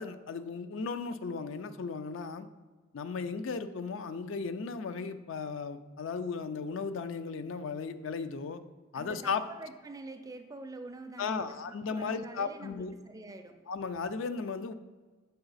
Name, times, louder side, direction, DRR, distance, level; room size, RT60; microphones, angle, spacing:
voice 1, 0.0-2.5 2.9-8.6 8.9-9.4 11.2-12.9 13.7-14.7, left 5 dB, 70° left, 11 dB, 0.4 m, -36 dB
voice 2, 8.9-13.6, right 2 dB, 20° right, 8 dB, 0.4 m, -46 dB
6.8 x 4.8 x 4.0 m, 1.4 s
head